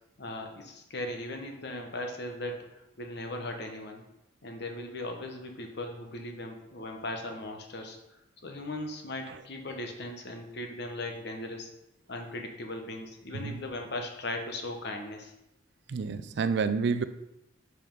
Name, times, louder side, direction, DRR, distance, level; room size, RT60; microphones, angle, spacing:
voice 1, 0.2-4.0 4.4-8.0 8.4-11.7 12.1-15.3, left 1 dB, 55° left, 3 dB, 1.1 m, -38 dB
voice 2, 15.9-17.0, right 5 dB, 60° right, 12 dB, 0.4 m, -28 dB
5.5 x 5.2 x 5.3 m, 0.89 s
head